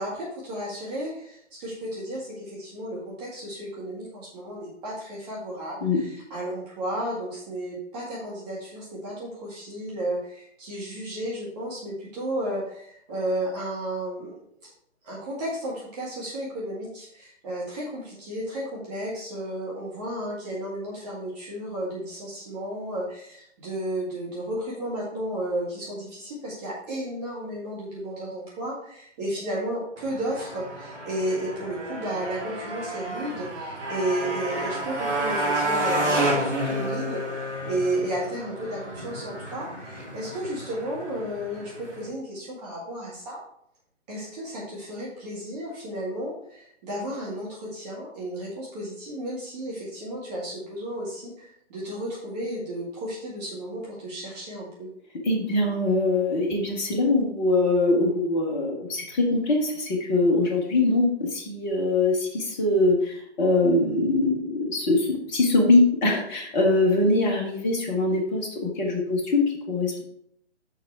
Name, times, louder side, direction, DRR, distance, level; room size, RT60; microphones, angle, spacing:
voice 1, 0.0-14.3 14.6-14.7 15.0-43.4 44.1-54.9, right 1 dB, 35° right, -5 dB, 1.9 m, -33 dB
Motorcycle, 30.0-42.1, right 1 dB, 90° right, 2.8 m, -30 dB
voice 2, 55.2-70.0, left 2 dB, 10° left, 1 dB, 0.5 m, -23 dB
6.6 x 5.1 x 4.4 m, 0.71 s
figure-of-eight pair, 135°, 35 cm